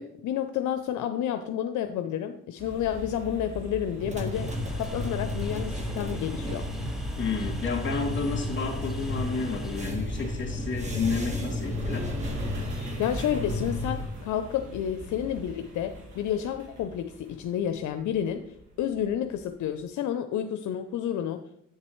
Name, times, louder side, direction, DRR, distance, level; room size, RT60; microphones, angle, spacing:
voice 1, 0.0-6.7 12.8-18.5 18.8-21.4, left 9 dB, 75° left, 8 dB, 0.6 m, -30 dB
sound 1, 2.6-19.8, right 1 dB, 75° right, 2.7 m, -41 dB
sound 2, 4.0-14.1, left 1 dB, 25° right, 1.4 m, -33 dB
Train, 4.3-9.9, left 1 dB, ahead, 1.0 m, -45 dB
voice 2, 7.2-12.0, left 4 dB, 40° left, 0 dB, 2.5 m, -31 dB
8.1 x 7.4 x 3.1 m, 0.75 s
cardioid pair, 90°, 30 cm